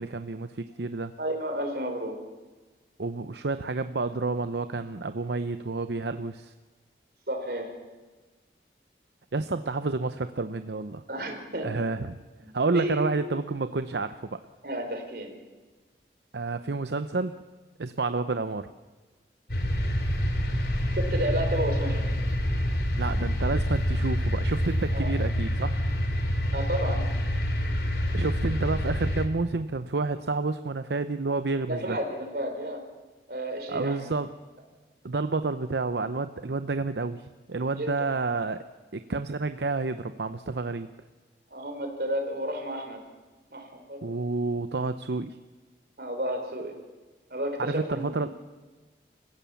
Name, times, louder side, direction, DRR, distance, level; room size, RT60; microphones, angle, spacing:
voice 1, 0.0-1.1 3.0-6.5 9.3-11.0 11.6-12.2 12.5-14.4 16.3-17.4 17.8-18.7 23.0-25.7 28.1-32.0 33.7-34.3 35.0-38.6 38.9-40.9 44.0-45.4 47.6-48.3, right 3 dB, 80° right, 11 dB, 0.7 m, -29 dB
voice 2, 1.2-2.2 7.3-7.7 11.1-11.7 12.4-13.0 14.6-15.3 18.1-18.2 21.0-22.1 24.9-25.1 26.5-27.0 31.7-32.8 33.3-34.1 37.8-38.1 41.5-43.0 43.5-44.1 46.0-46.7 47.3-48.2, right 1 dB, 60° right, 4 dB, 4.2 m, -32 dB
sound 1, 19.5-29.3, equal, 70° left, 3.2 m, -27 dB
28.0 x 16.0 x 7.1 m, 1.3 s
head